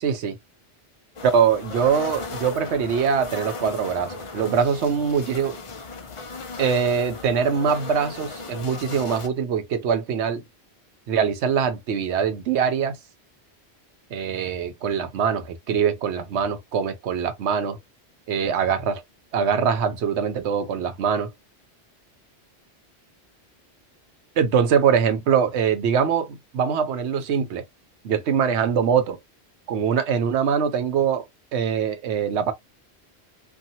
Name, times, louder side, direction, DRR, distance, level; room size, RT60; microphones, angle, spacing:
voice 1, 0.0-0.3 1.3-5.6 6.6-10.4 11.1-13.0 14.1-17.8 18.3-19.0 19.3-21.3 24.4-27.6 28.0-29.2 29.7-31.3 31.5-32.5, right 7 dB, 85° right, 1.0 m, -23 dB
sound 1, 1.2-9.3, left 3 dB, 40° left, 0.5 m, -36 dB
2.8 x 2.5 x 2.7 m
omnidirectional pair, 1.1 m